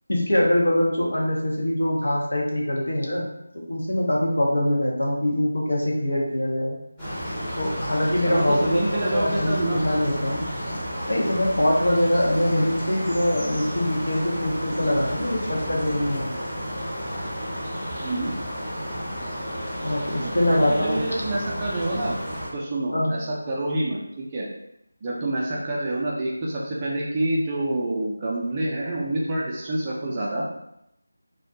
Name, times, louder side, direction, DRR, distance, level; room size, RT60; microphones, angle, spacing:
voice 1, 0.1-3.3 3.7-6.8 7.6-10.5 11.1-16.3 19.8-21.0 22.9-23.1, left 1 dB, 70° left, -3 dB, 0.8 m, -23 dB
sound 1, 7.0-22.5, equal, 10° left, 0.8 m, -32 dB
voice 2, 8.3-9.8 12.5-12.6 18.0-18.3 20.2-22.2 22.5-24.5 25.0-30.4, right 1 dB, 20° right, -5 dB, 0.4 m, -27 dB
2.3 x 2.2 x 2.7 m, 0.80 s
figure-of-eight pair, 165°, 0 cm